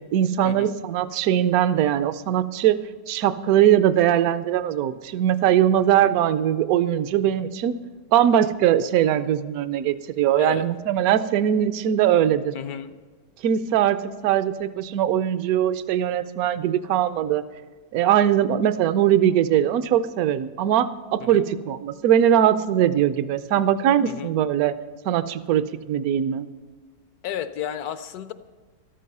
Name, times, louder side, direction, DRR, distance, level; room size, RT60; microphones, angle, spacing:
voice 1, 0.1-2.8 3.1-7.7 8.1-12.5 13.4-17.4 17.9-24.7 25.1-26.5, right 10 dB, 70° right, 13 dB, 1.0 m, -21 dB
voice 2, 12.5-12.9 21.2-21.4 24.0-24.3 27.2-28.3, left 9 dB, 70° left, 12 dB, 1.0 m, -32 dB
13.5 x 13.0 x 5.4 m, 1.4 s
omnidirectional pair, 1.9 m